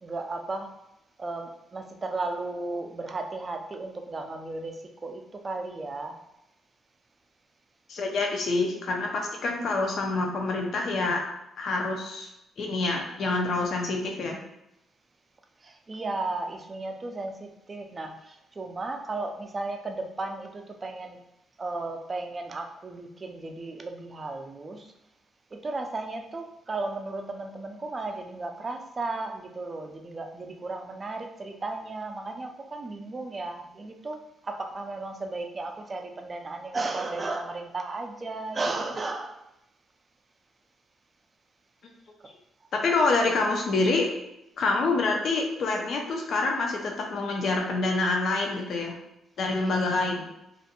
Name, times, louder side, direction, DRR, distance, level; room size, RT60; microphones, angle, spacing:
voice 1, 0.0-0.7 1.2-6.2 15.6-21.2 21.6-24.9 25.5-34.2 34.4-39.4 49.6-49.7, right 3 dB, 30° right, 4 dB, 0.4 m, -35 dB
voice 2, 7.9-11.2 11.6-12.3 12.6-14.4 42.7-44.1 44.6-49.0 49.4-50.3, left 3 dB, 60° left, 1 dB, 0.5 m, -26 dB
2.5 x 2.1 x 2.8 m, 0.86 s
cardioid pair, 90°, 0 cm